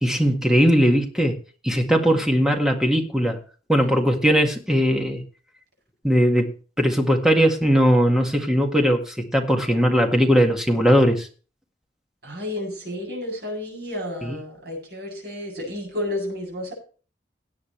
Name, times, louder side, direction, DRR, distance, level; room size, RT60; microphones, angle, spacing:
voice 1, 0.0-1.4 1.6-3.4 3.7-5.2 6.0-11.3 14.2-14.4, equal, 5° right, 2 dB, 1.8 m, -19 dB
voice 2, 12.2-16.7, left 1 dB, 65° right, 0 dB, 7.9 m, -31 dB
17.5 x 9.9 x 3.2 m, 0.38 s
head